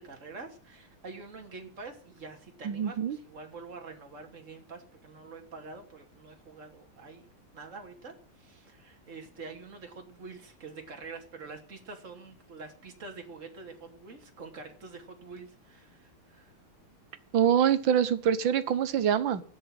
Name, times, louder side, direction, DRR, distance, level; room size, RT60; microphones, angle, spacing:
voice 1, 0.0-16.6, right 4 dB, 35° right, 3 dB, 3.0 m, -46 dB
voice 2, 2.6-3.2 17.3-19.4, right 9 dB, 65° right, 12 dB, 1.9 m, -25 dB
13.0 x 9.4 x 9.0 m, 0.43 s
omnidirectional pair, 2.3 m